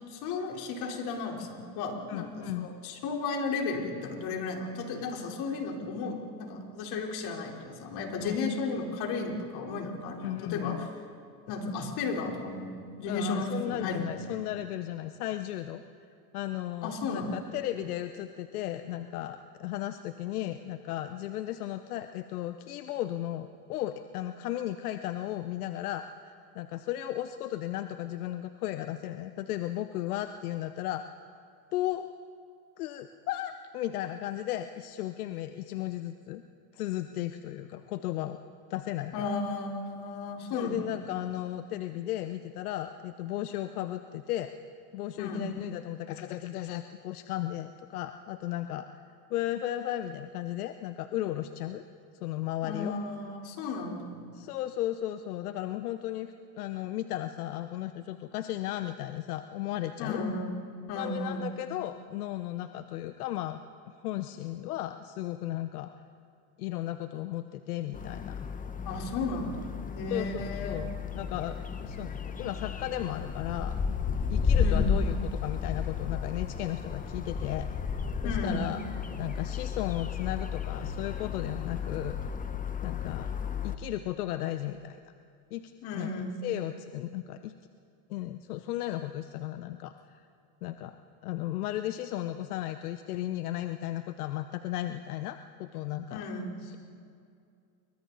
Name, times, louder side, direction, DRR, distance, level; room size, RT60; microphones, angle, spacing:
voice 1, 0.1-10.8 11.5-12.7 13.0-14.4 16.8-17.3 39.1-40.8 45.2-45.5 52.6-54.3 60.0-60.5 60.9-61.5 68.8-70.8 74.6-75.0 78.2-78.6 85.8-86.3 96.1-96.6, left 3 dB, 60° left, 1 dB, 4.1 m, -34 dB
voice 2, 2.1-2.7 8.2-8.4 10.2-10.9 13.1-15.8 16.3-31.0 31.7-32.0 32.8-36.4 36.7-38.4 38.7-39.3 40.5-44.5 44.9-49.0 49.3-51.8 52.2-53.0 54.3-60.2 60.9-63.6 64.0-65.9 66.6-68.3 70.1-74.0 74.3-77.7 78.2-78.8 79.2-82.2 82.8-83.3 83.6-85.0 85.5-86.1 86.4-87.5 88.1-90.2 90.6-91.0 91.2-96.2 96.6-96.8, left 13 dB, 90° left, 9 dB, 0.9 m, -35 dB
sound 1, 67.9-83.8, left 6 dB, 20° left, 1.1 m, -33 dB
29.0 x 23.5 x 4.1 m, 2.4 s
supercardioid pair, 115°, 44 cm